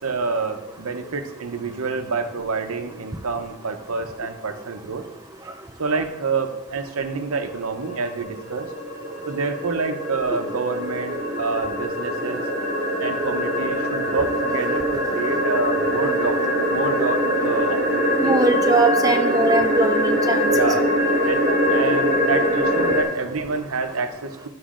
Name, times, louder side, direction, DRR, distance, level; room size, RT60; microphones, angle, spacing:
voice 1, 0.0-5.1 5.8-8.7 9.3-12.4 13.0-16.4 16.7-18.4 20.5-20.9 21.3-21.4 21.7-24.5, right 4 dB, 70° right, 7 dB, 0.7 m, -27 dB
sound 1, 7.5-23.0, equal, 40° right, 1.5 m, -23 dB
voice 2, 18.2-20.4 21.5-21.6, right 2 dB, 15° right, 5 dB, 0.4 m, -21 dB
11.5 x 6.3 x 2.5 m, 0.98 s
head